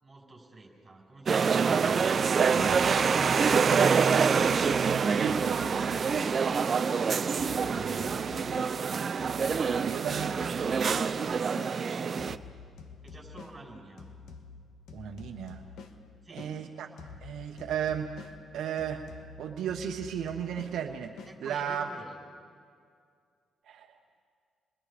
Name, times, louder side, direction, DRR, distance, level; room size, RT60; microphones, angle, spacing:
voice 1, 0.0-1.8 6.1-6.5 10.7-12.3 13.0-14.1 16.2-16.6 21.3-22.2, right 2 dB, 25° right, 0 dB, 6.0 m, -47 dB
sound 1, 1.3-12.4, right 6 dB, 45° right, 0.7 m, -26 dB
voice 2, 2.4-2.9 5.1-5.6 7.7-8.1 9.8-10.4 14.9-15.6 16.3-16.9 17.2-18.2 18.5-19.0 19.4-21.1 21.4-21.9 23.7-23.9, right 8 dB, 75° right, 3 dB, 1.2 m, -34 dB
sound 2, 2.6-7.0 7.4-11.8 12.2-16.6 17.0-21.4, left 4 dB, 70° left, 1.8 m, -48 dB
30.0 x 22.0 x 5.1 m, 2.2 s
cardioid pair, 90°, 0 cm